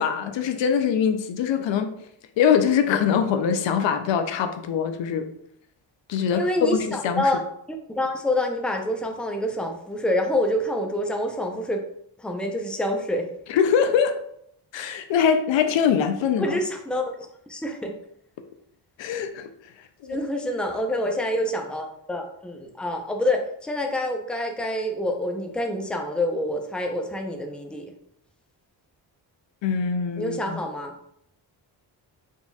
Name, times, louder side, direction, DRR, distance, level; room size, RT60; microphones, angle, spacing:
voice 1, 0.0-1.9 2.4-5.3 6.1-7.3 13.5-14.2 14.7-16.6 19.0-19.5 20.0-20.2 29.6-30.6, left 7 dB, 75° left, 8 dB, 0.6 m, -23 dB
voice 2, 6.3-7.4 7.7-11.8 12.2-13.2 16.4-17.9 20.1-27.9 30.2-30.9, left 1 dB, ahead, 3 dB, 0.6 m, -27 dB
3.9 x 3.8 x 2.3 m, 0.71 s
cardioid pair, 70°, 45 cm